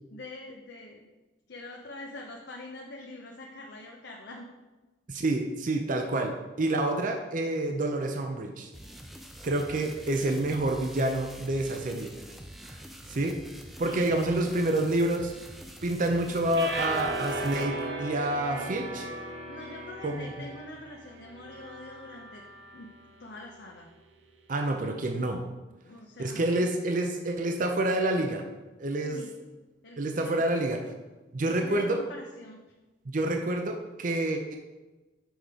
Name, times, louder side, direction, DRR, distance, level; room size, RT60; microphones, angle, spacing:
voice 1, 0.1-1.1 1.5-4.5 13.8-14.0 19.5-22.4 22.7-22.9 23.2-23.9 25.8-26.7 28.9-29.3 29.8-30.5 31.4-32.6, left 2 dB, 75° left, 0 dB, 0.8 m, -44 dB
voice 2, 5.1-8.7 9.4-12.3 12.6-12.8 13.1-13.4 13.8-15.3 15.8-19.1 20.0-20.3 24.5-25.4 26.2-28.4 28.8-29.2 30.0-30.8 31.3-32.0 33.1-34.6, right 1 dB, 50° right, 4 dB, 0.6 m, -28 dB
sound 1, 8.7-17.7, equal, ahead, 0.5 m, -46 dB
sound 2, 16.5-22.8, right 2 dB, 80° right, 1.1 m, -37 dB
6.3 x 4.8 x 5.0 m, 1.1 s
head